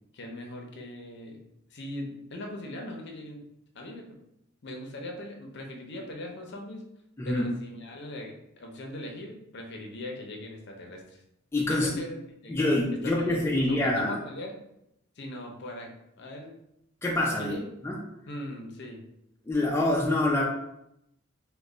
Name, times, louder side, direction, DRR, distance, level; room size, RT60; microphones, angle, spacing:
voice 1, 0.1-1.4 1.7-3.4 3.7-4.2 4.6-6.8 7.2-11.2 11.7-12.2 12.4-12.6 13.0-14.5 15.2-15.9 16.2-16.5 17.4-17.6 18.3-19.0, left 1 dB, 55° left, 1 dB, 0.6 m, -40 dB
voice 2, 11.5-11.9 12.5-14.2 17.0-17.6 17.8-18.0 19.5-20.4, left 1 dB, 10° left, -3 dB, 0.4 m, -25 dB
3.1 x 2.2 x 3.7 m, 0.81 s
head